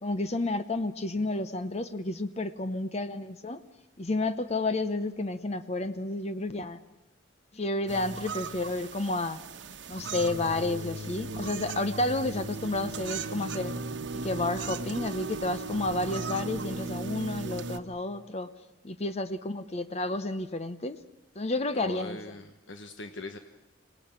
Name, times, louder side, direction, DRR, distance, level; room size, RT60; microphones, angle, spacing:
voice 1, 0.0-3.6 4.0-6.8 7.5-9.4 9.9-13.7 14.2-18.5 18.8-21.0 21.4-22.2, left 2 dB, 35° left, 11 dB, 0.8 m, -31 dB
sound 1, 7.9-17.8, right 3 dB, 70° right, 1.2 m, -37 dB
voice 2, 21.7-23.4, left 3 dB, 85° left, 7 dB, 1.2 m, -41 dB
25.5 x 18.0 x 8.8 m, 0.94 s
head